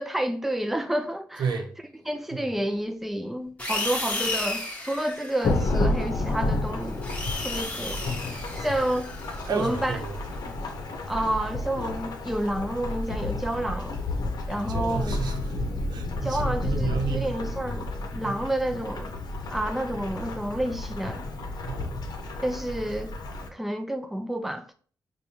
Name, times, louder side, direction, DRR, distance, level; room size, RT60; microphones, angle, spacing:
voice 1, 0.0-1.6 2.1-7.0 7.4-9.1 9.5-10.0 11.1-14.0 14.5-15.2 16.2-17.9 18.1-19.1 19.5-21.3 22.4-23.1 23.5-24.7, right 1 dB, 5° right, 0.4 m, -29 dB
voice 2, 1.4-1.7 2.3-2.5 9.4-10.2 14.7-17.3 18.2-18.4 21.6-22.0, right 5 dB, 75° right, 0.7 m, -32 dB
sound 1, 3.6-6.1 6.8-10.5, left 2 dB, 20° left, 1.0 m, -34 dB
Thunderstorm / Rain, 5.4-23.5, left 2 dB, 70° left, 0.7 m, -31 dB
4.8 x 2.3 x 2.8 m
cardioid pair, 85°, 7 cm